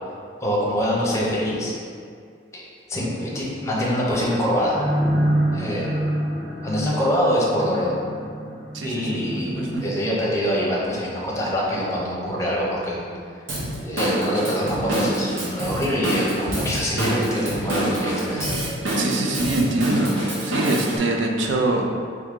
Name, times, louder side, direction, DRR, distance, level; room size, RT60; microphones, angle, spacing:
voice 1, 0.4-1.7 2.5-2.6 2.9-4.8 5.5-5.9 6.6-7.9 8.8-13.1 13.8-18.5, equal, 15° left, -5 dB, 0.7 m, -24 dB
sound 1, 4.7-9.8, right 1 dB, 25° right, 1.2 m, -26 dB
voice 2, 8.7-9.8 19.0-21.9, right 2 dB, 70° right, 2 dB, 0.5 m, -24 dB
Drum kit / Drum, 13.5-21.0, right 1 dB, 90° right, 1.0 m, -26 dB
3.7 x 3.1 x 3.6 m, 2.2 s
head